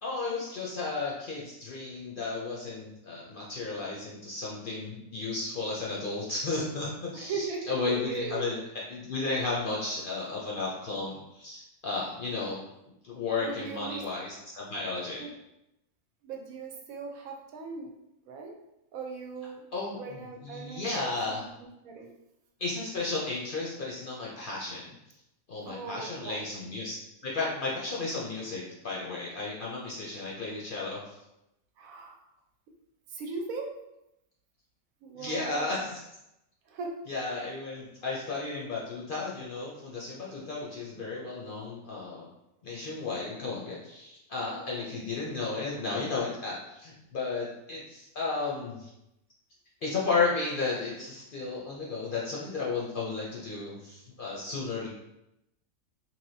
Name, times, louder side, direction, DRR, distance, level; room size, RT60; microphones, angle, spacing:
voice 1, 0.0-8.6 8.9-12.6 13.0-15.2 19.7-21.4 22.6-24.9 25.5-27.0 27.2-31.1 35.2-36.1 37.1-42.3 42.6-48.9 49.8-54.9, left 3 dB, 55° left, -4 dB, 0.6 m, -33 dB
voice 2, 7.1-8.5 13.4-14.0 15.2-15.3 16.2-17.9 18.3-18.5 18.9-19.6 20.0-21.5 21.8-22.1 25.7-26.5 31.8-32.2 33.1-33.7 35.0-35.8 36.7-37.0 44.5-45.0, right 4 dB, 90° right, 2 dB, 1.1 m, -39 dB
3.3 x 2.7 x 2.6 m, 0.88 s
omnidirectional pair, 1.4 m